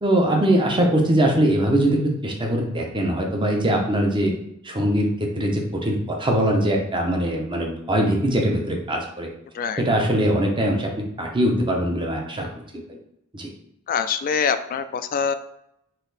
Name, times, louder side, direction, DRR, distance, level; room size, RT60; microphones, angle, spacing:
voice 1, 0.0-4.3 4.6-9.3 9.8-10.9 11.2-12.5 12.9-13.0 13.3-13.5, right 1 dB, 20° right, 1 dB, 0.8 m, -22 dB
voice 2, 13.9-15.3, left 6 dB, 40° left, 10 dB, 0.3 m, -24 dB
4.3 x 2.8 x 4.0 m, 0.77 s
head